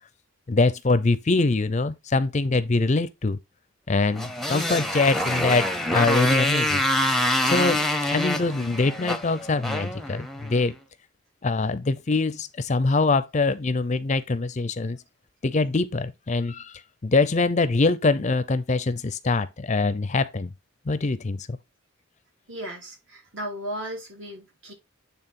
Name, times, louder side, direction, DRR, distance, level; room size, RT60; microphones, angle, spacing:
voice 1, 0.5-3.4 3.9-6.8 7.4-7.8 8.1-10.7 11.4-15.0 15.4-20.5 20.9-21.6, left 3 dB, 35° left, 0.5 m, -24 dB
Motorcycle, 4.1-10.6, left 1 dB, ahead, 0.7 m, -26 dB
voice 2, 22.5-24.7, equal, 65° right, 3.2 m, -35 dB
8.8 x 3.5 x 4.2 m
head